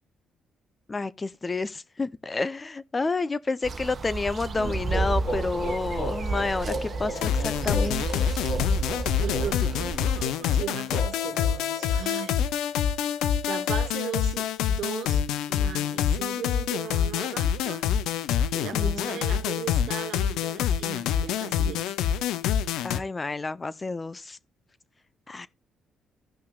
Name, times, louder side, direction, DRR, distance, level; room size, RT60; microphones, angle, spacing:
voice 1, 0.9-8.2 18.7-19.2 22.8-24.4 25.3-25.5, left 3 dB, 25° left, 0.6 m, -30 dB
sound 1, 3.6-10.3, right 4 dB, 45° right, 1.1 m, -31 dB
sound 2, 4.5-12.3, equal, 70° left, 4.0 m, -37 dB
sound 3, 7.1-23.0, left 9 dB, 85° left, 0.5 m, -26 dB
voice 2, 9.2-12.5 13.0-13.2 13.5-17.9 18.5-21.9, right 9 dB, 75° right, 1.0 m, -38 dB
16.0 x 5.7 x 2.4 m
cardioid pair, 85°, 0 cm